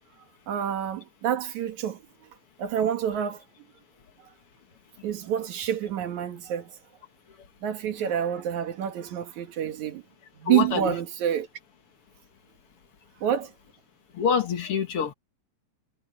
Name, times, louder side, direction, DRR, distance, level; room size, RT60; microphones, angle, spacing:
voice 1, 0.5-2.3 2.6-3.4 4.2-4.3 5.0-6.8 7.6-10.0 10.4-11.5 13.2-13.5, right 10 dB, 65° right, 2.8 m, -28 dB
voice 2, 10.5-10.9 14.1-15.1, left 6 dB, 50° left, 2.0 m, -26 dB
omnidirectional pair, 3.8 m